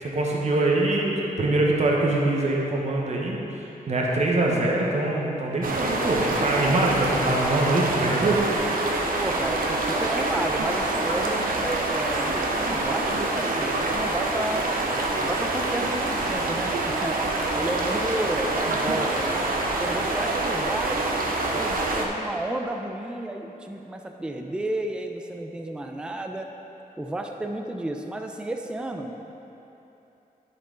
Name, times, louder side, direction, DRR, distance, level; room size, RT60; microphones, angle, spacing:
voice 1, 0.0-3.4 3.9-8.4, right 2 dB, 45° right, -2 dB, 1.0 m, -23 dB
sound 1, 5.6-22.1, right 2 dB, 65° right, 0.8 m, -26 dB
voice 2, 9.2-14.7 15.2-17.2 17.5-21.1 21.5-26.5 27.0-29.3, right 1 dB, 5° right, 4 dB, 0.4 m, -32 dB
11.0 x 4.5 x 3.8 m, 3.0 s
wide cardioid pair, 115°, 16 cm